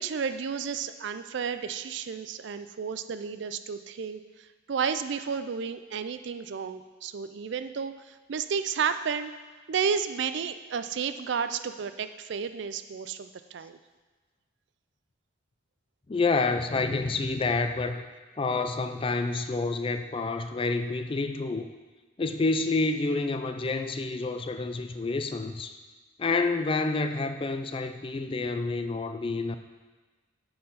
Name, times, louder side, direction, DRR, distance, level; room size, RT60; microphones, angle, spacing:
voice 1, 0.0-4.2 4.7-9.3 9.7-13.8, right 6 dB, 65° right, 10 dB, 0.4 m, -32 dB
voice 2, 16.1-18.0 18.4-21.7 22.2-25.8 26.2-29.6, left 3 dB, 30° left, 8 dB, 0.4 m, -28 dB
6.6 x 5.7 x 5.6 m, 1.3 s
head